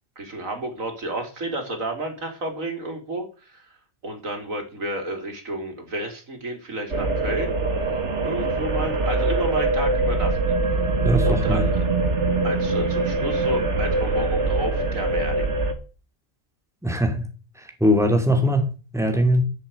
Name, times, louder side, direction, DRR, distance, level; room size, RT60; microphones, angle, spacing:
voice 1, 0.2-3.7 4.0-7.6 7.8-7.9 8.2-10.6 11.2-11.8 12.4-15.5, right 1 dB, 75° right, 4 dB, 3.5 m, -31 dB
sound 1, 6.9-15.7, right 2 dB, 55° right, 1.9 m, -23 dB
voice 2, 11.0-11.7 16.8-17.3 17.6-19.4, equal, ahead, 4 dB, 2.7 m, -21 dB
10.5 x 7.4 x 8.7 m, 0.35 s
omnidirectional pair, 1.4 m